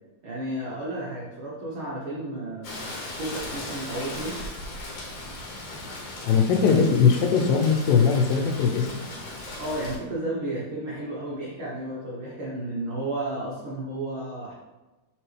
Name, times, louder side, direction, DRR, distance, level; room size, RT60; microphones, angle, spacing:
voice 1, 0.2-2.8 3.2-4.4 9.4-14.5, right 1 dB, 90° right, -5 dB, 1.1 m, -32 dB
Rain, 2.6-10.0, left 2 dB, 60° left, 1.8 m, -37 dB
voice 2, 6.3-8.9, left 6 dB, 80° left, 4 dB, 2.3 m, -20 dB
6.7 x 5.9 x 3.3 m, 1.1 s
omnidirectional pair, 4.2 m